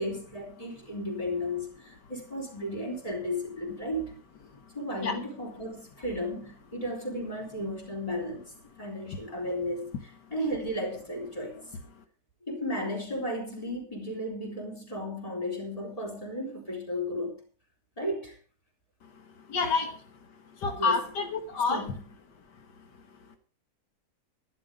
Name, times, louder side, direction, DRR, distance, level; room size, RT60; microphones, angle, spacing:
voice 1, 0.0-4.2 4.7-11.6 12.5-17.4 18.0-18.4 20.7-21.0 21.7-22.0, left 1 dB, 20° left, 3.9 m, -34 dB
voice 2, 19.5-19.9 20.6-21.9, left 4 dB, 85° left, 1.9 m, -28 dB
11.5 x 11.5 x 5.1 m
omnidirectional pair, 1.8 m